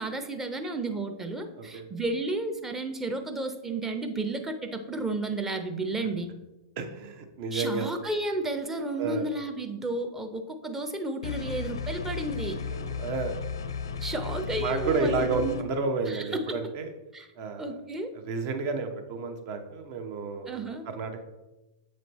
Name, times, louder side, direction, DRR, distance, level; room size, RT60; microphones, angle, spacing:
voice 1, 0.0-6.3 7.5-12.6 14.0-15.6 16.1-16.6 17.1-17.3 17.6-18.1 20.5-20.9, right 2 dB, 15° right, 7 dB, 0.6 m, -32 dB
voice 2, 1.6-1.9 6.8-7.9 9.0-9.3 12.7-13.3 14.6-16.9 17.4-17.7 18.1-21.2, right 4 dB, 50° right, 6 dB, 0.9 m, -31 dB
sound 1, 11.2-15.6, left 6 dB, 85° left, 0.5 m, -34 dB
7.5 x 3.2 x 4.1 m, 1.0 s
hypercardioid pair, 130°, 2 cm